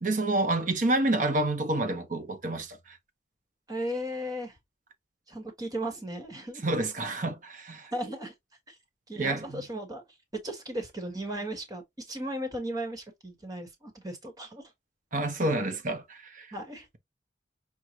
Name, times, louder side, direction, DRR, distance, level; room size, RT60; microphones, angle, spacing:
voice 1, 0.0-3.0 6.6-7.9 9.2-9.6 15.1-16.5, right 2 dB, 45° right, 1.0 m, -28 dB
voice 2, 3.7-4.6 5.3-6.6 7.9-8.3 8.7-8.8 9.1-10.0 10.4-14.6 16.5-16.9, right 1 dB, 20° right, 1.4 m, -36 dB
6.4 x 2.4 x 2.8 m
head